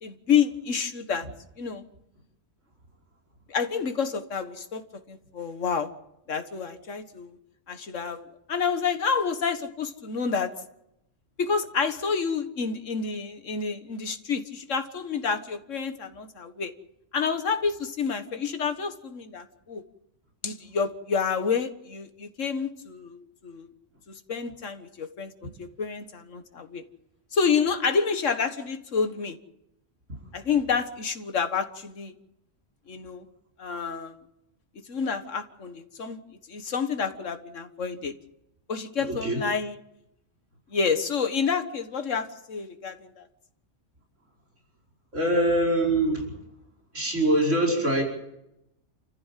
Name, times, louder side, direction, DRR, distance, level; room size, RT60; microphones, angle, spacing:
voice 1, 0.0-1.3 1.6-1.8 3.5-4.8 5.1-5.9 6.3-7.4 7.7-10.5 11.4-16.7 17.1-19.8 20.4-23.7 24.3-25.3 25.6-26.8 27.3-29.4 30.3-32.1 32.9-33.3 33.6-34.2 34.9-36.2 36.5-38.1 38.7-39.8 40.7-43.3, left 6 dB, 85° left, 8 dB, 1.9 m, -29 dB
voice 2, 39.0-39.4 45.1-46.3 46.9-48.0, right 1 dB, 80° right, -1 dB, 5.7 m, -23 dB
29.5 x 14.5 x 7.5 m, 0.84 s
omnidirectional pair, 1.3 m